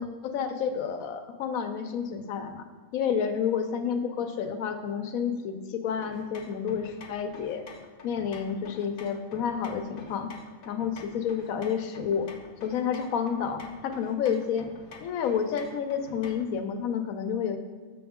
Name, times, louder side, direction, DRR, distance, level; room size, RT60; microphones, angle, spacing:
voice 1, 0.0-2.6 2.9-7.6 8.0-10.3 10.7-12.3 12.6-14.7 15.0-17.6, left 7 dB, 75° left, 7 dB, 1.1 m, -30 dB
sound 1, 6.0-16.6, left 3 dB, 50° left, 0.7 m, -48 dB
7.0 x 6.4 x 3.6 m, 1.5 s
omnidirectional pair, 1.5 m